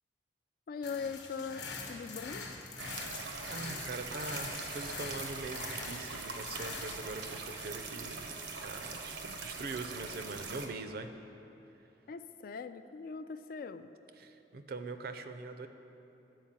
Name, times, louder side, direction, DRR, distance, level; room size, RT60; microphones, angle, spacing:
voice 1, 0.7-2.5 12.1-13.9, left 5 dB, 55° left, 11 dB, 0.3 m, -41 dB
sound 1, 0.8-7.0, left 4 dB, 85° left, 0.9 m, -44 dB
voice 2, 2.8-3.1 3.5-11.1 14.2-15.7, right 3 dB, 60° right, 8 dB, 0.5 m, -43 dB
sound 2, 2.8-10.7, right 4 dB, 85° right, 0.9 m, -42 dB
10.5 x 4.5 x 7.3 m, 3.0 s
head